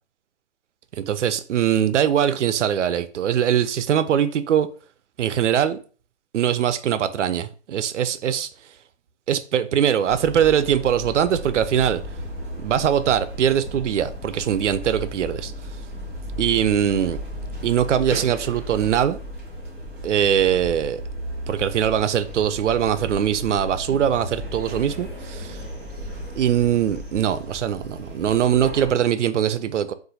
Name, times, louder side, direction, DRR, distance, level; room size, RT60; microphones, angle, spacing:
voice 1, 0.9-4.7 5.2-5.8 6.3-8.5 9.3-12.0 12.6-15.5 16.4-17.2 17.6-19.2 20.0-21.0 21.5-25.6 26.4-29.9, right 9 dB, 85° right, 0.5 m, -22 dB
sound 1, 10.1-28.9, equal, 10° left, 0.6 m, -35 dB
4.0 x 2.5 x 2.3 m
hypercardioid pair, 180°, 35 cm